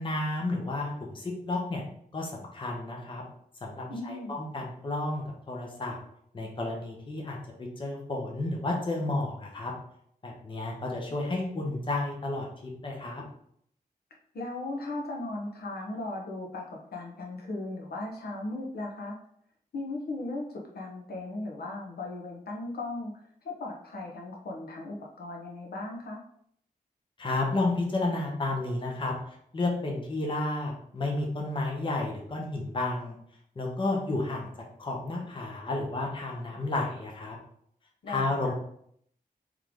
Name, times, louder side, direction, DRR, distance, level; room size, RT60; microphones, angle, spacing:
voice 1, 0.0-1.8 2.1-3.2 3.6-6.0 6.3-9.7 10.2-13.2 27.2-29.1 29.5-33.2 33.6-34.5 34.8-37.4 38.1-38.5, left 2 dB, 30° left, -1 dB, 0.8 m, -31 dB
voice 2, 3.9-4.4 14.3-19.2 19.7-20.5 20.7-26.2 38.0-38.5, left 2 dB, 85° left, -1 dB, 0.9 m, -37 dB
3.7 x 3.2 x 3.6 m, 0.67 s
wide cardioid pair, 175°, 16 cm